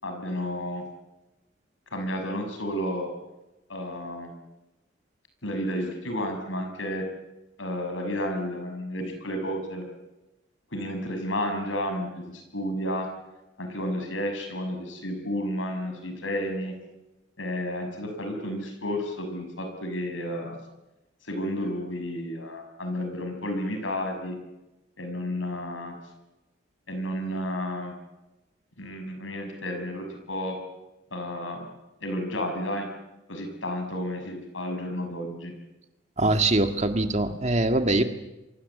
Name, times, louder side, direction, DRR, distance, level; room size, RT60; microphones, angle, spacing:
voice 1, 0.0-0.8 1.9-3.1 3.7-4.3 5.4-7.0 7.6-9.8 10.7-13.1 13.6-16.7 17.4-20.6 21.2-24.4 25.0-26.0 26.9-27.9 28.8-30.6 31.1-31.7 32.0-32.9 33.3-35.5, equal, 85° left, 5 dB, 6.3 m, -31 dB
voice 2, 36.2-38.0, right 2 dB, 35° right, 7 dB, 1.8 m, -23 dB
27.5 x 23.5 x 8.4 m, 1.0 s
head